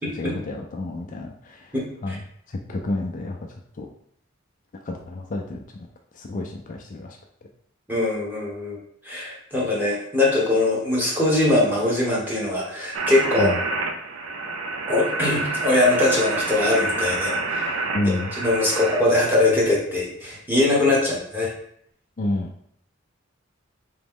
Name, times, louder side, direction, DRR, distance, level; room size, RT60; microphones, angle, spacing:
voice 1, 0.1-1.7 2.0-3.9 4.8-5.9 6.1-7.2 13.4-13.6 17.9-18.3 22.2-22.5, left 2 dB, 40° left, 1 dB, 0.4 m, -30 dB
voice 2, 1.7-2.2 7.9-8.8 9.0-13.5 14.9-17.7 18.4-21.5, left 2 dB, 10° right, -5 dB, 1.1 m, -22 dB
sound 1, 12.9-19.0, right 3 dB, 90° right, 0.5 m, -28 dB
3.9 x 3.0 x 3.6 m, 0.68 s
head